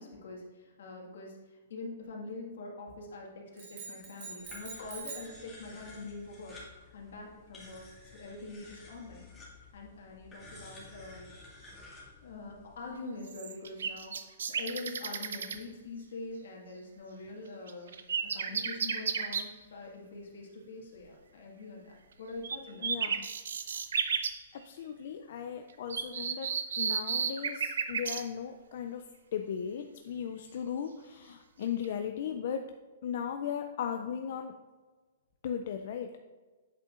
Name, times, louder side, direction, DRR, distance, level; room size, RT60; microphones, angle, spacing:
voice 1, 0.0-6.6 6.9-7.9 8.1-9.3 9.7-11.3 12.2-17.9 18.3-22.9, left 3 dB, 75° left, -1 dB, 1.8 m, -44 dB
sound 1, 3.6-5.4, right 4 dB, 40° right, 2.0 m, -44 dB
sound 2, 4.4-12.9, left 2 dB, 10° left, 1.9 m, -52 dB
sound 3, 13.3-15.6 17.7-19.5 22.4-22.6 22.8-24.4 25.9-28.2 31.6-31.8, right 6 dB, 90° right, 0.6 m, -33 dB
voice 2, 22.8-23.3 23.7-23.8 24.5-26.5 26.8-29.0 29.3-32.7 33.0-34.5 35.4-36.2, left 8 dB, 50° left, 6 dB, 0.3 m, -37 dB
8.2 x 6.4 x 2.5 m, 1.3 s
hypercardioid pair, 165°, 0 cm